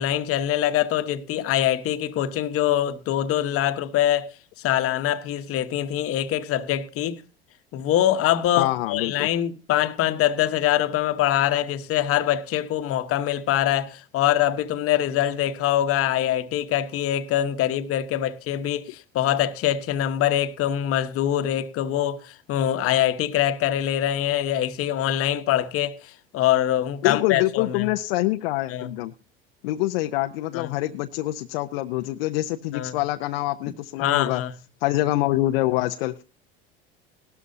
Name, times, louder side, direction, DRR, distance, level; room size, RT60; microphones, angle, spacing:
voice 1, 0.0-4.3 4.6-7.2 7.7-27.9 28.7-28.9 30.5-30.7 32.7-33.0 34.0-34.5, left 11 dB, 50° left, 1.1 m, -24 dB
voice 2, 8.6-9.3 27.0-29.1 29.6-34.4 34.8-36.2, left 17 dB, 70° left, 0.6 m, -25 dB
17.5 x 12.5 x 2.7 m
hypercardioid pair, 80°, 30 cm